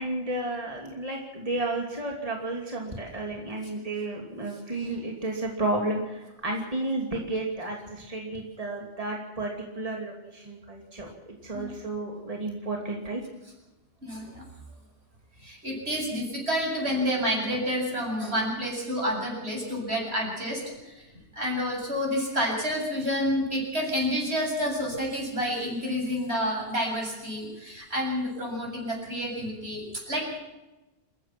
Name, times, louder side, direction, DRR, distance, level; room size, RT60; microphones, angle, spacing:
voice 1, 0.0-13.2, right 2 dB, 35° right, 0 dB, 2.9 m, -32 dB
voice 2, 14.0-14.4 15.4-21.1 21.3-30.4, equal, 75° right, -1 dB, 7.8 m, -29 dB
28.0 x 15.5 x 6.0 m, 1.1 s
omnidirectional pair, 1.1 m